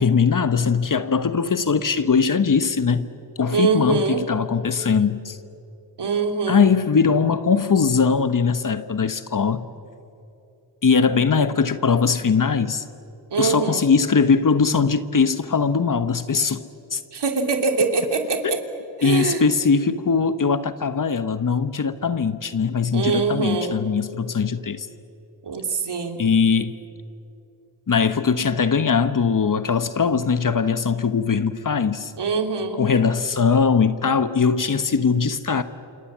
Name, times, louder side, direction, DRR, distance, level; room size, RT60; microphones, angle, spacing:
voice 1, 0.0-3.1 3.4-5.4 6.5-9.6 10.8-12.8 13.4-17.0 18.4-18.5 19.0-24.9 26.2-26.7 27.9-32.1 32.8-35.6, left 5 dB, 45° left, 1.3 m, -20 dB
voice 2, 3.5-4.3 6.0-6.7 11.0-11.3 13.3-13.9 17.1-18.6 19.0-19.6 22.9-23.8 25.4-26.2 32.2-32.9, right 4 dB, 60° right, 3.0 m, -23 dB
28.0 x 27.5 x 7.5 m
cardioid pair, 60°, 46 cm